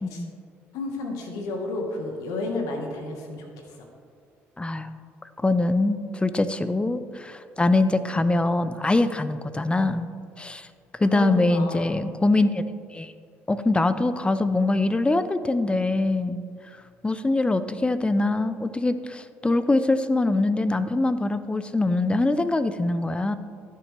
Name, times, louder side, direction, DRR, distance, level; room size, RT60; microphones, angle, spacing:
voice 1, 0.0-0.3 4.6-4.9 5.4-10.1 10.4-10.7 10.9-12.6 12.9-13.1 13.5-16.4 17.0-23.4, left 2 dB, 15° left, 12 dB, 0.5 m, -23 dB
voice 2, 0.7-3.8 11.0-12.0, left 2 dB, 75° left, 2 dB, 1.5 m, -32 dB
13.5 x 7.0 x 3.4 m, 2.2 s
hypercardioid pair, 60°, 6 cm